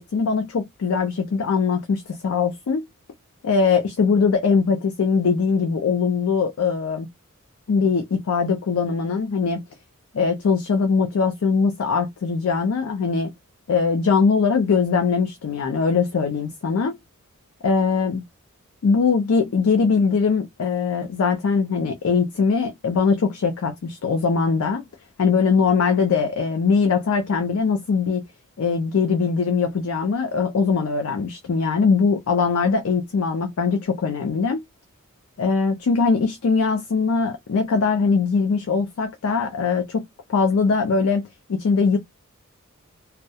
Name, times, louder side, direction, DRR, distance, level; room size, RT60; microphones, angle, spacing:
voice 1, 0.0-2.8 3.4-7.1 7.7-9.6 10.1-13.3 13.7-17.0 17.6-18.2 18.8-24.8 25.2-28.2 28.6-34.6 35.4-42.0, left 5 dB, 75° left, 0.4 m, -21 dB
2.3 x 2.0 x 2.6 m
head